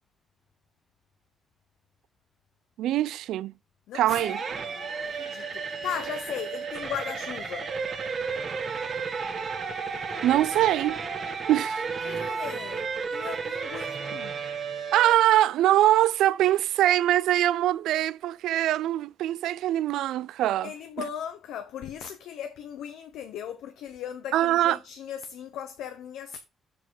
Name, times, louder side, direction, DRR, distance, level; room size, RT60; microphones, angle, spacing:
voice 1, 2.8-3.5 3.9-4.4 10.2-11.0 11.5-11.8 14.9-20.7 24.3-24.8, right 13 dB, 80° right, 0.3 m, -23 dB
voice 2, 3.9-7.7 12.0-14.4 20.6-26.4, left 9 dB, 80° left, 0.8 m, -38 dB
sound 1, 4.1-15.1, right 5 dB, 55° right, 1.8 m, -33 dB
7.3 x 4.8 x 4.6 m
supercardioid pair, 50°, 0 cm